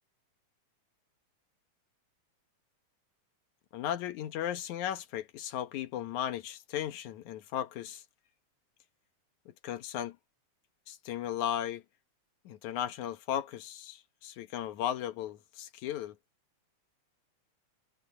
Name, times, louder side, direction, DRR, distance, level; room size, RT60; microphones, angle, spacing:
voice 1, 3.7-8.0 9.5-10.2 10.9-11.8 12.5-16.2, left 11 dB, 75° left, 2.5 m, -36 dB
omnidirectional pair, 3.4 m